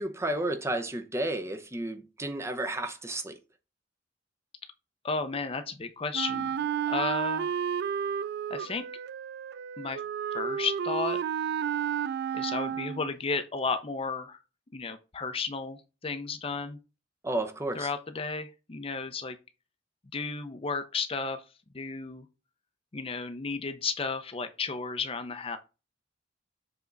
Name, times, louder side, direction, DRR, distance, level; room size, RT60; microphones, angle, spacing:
voice 1, 0.0-3.4 17.2-17.9, right 1 dB, 15° right, 0.7 m, -32 dB
voice 2, 5.0-6.5 6.9-7.6 8.5-8.8 9.8-10.0 10.3-11.2 12.3-14.4 14.7-16.8 17.7-19.4 20.1-21.4 21.7-22.3 22.9-25.6, left 4 dB, 30° left, 0.6 m, -33 dB
Wind instrument woodwind instrument, 6.1-13.1, right 8 dB, 60° right, 0.3 m, -32 dB
7.1 x 3.5 x 3.9 m
head